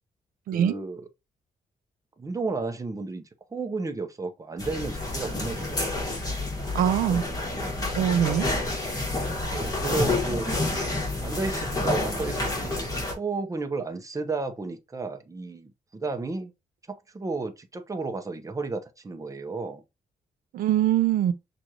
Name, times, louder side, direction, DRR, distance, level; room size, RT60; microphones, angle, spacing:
voice 1, 0.5-1.1 2.2-3.2 3.5-6.1 9.4-10.5 11.2-16.5 16.9-19.8, right 3 dB, 25° right, 0.8 m, -33 dB
sound 1, 4.6-13.1, left 2 dB, 25° left, 1.7 m, -29 dB
voice 2, 6.7-7.2 8.0-8.5 20.5-21.3, right 10 dB, 90° right, 0.5 m, -22 dB
6.1 x 2.6 x 2.9 m
cardioid pair, 90°, 14 cm